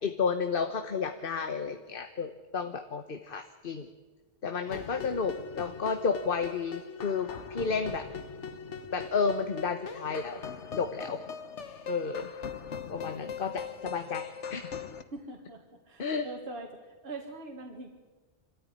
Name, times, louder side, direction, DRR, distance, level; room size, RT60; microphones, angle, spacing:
voice 1, 0.0-3.9 4.4-8.1 8.9-10.4 10.8-11.2 11.9-12.3 12.9-14.6 16.0-16.3, left 5 dB, 50° left, 7 dB, 1.2 m, -32 dB
sound 1, 4.7-15.0, left 6 dB, 75° left, 1.5 m, -40 dB
voice 2, 15.1-17.9, right 2 dB, 60° right, 2 dB, 2.2 m, -43 dB
25.5 x 14.0 x 9.9 m, 1.2 s
omnidirectional pair, 1.2 m